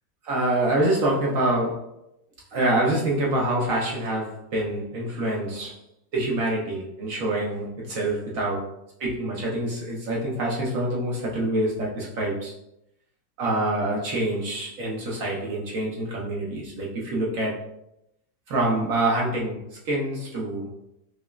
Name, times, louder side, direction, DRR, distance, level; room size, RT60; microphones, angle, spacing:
voice 1, 0.2-1.9 2.5-5.8 6.1-8.7 9.0-12.5 13.4-17.6 18.5-20.7, right 1 dB, 60° right, -3 dB, 0.9 m, -26 dB
5.0 x 2.2 x 2.3 m, 0.82 s
omnidirectional pair, 1.9 m